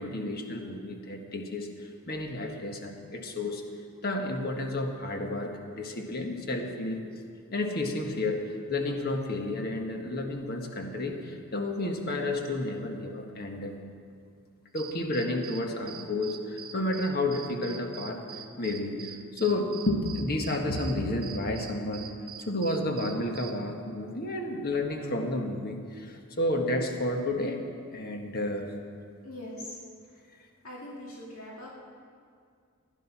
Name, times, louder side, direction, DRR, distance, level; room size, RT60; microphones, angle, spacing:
voice 1, 0.0-3.6 4.0-7.1 7.5-13.8 14.7-18.2 18.6-22.1 22.4-27.6 27.9-28.7, left 1 dB, 45° left, 3 dB, 1.5 m, -31 dB
sound 1, 14.7-23.6, right 8 dB, 45° right, 0.9 m, -44 dB
voice 2, 29.2-29.7 30.6-31.8, left 1 dB, 85° left, -4 dB, 2.2 m, -41 dB
15.5 x 11.0 x 6.0 m, 2.2 s
head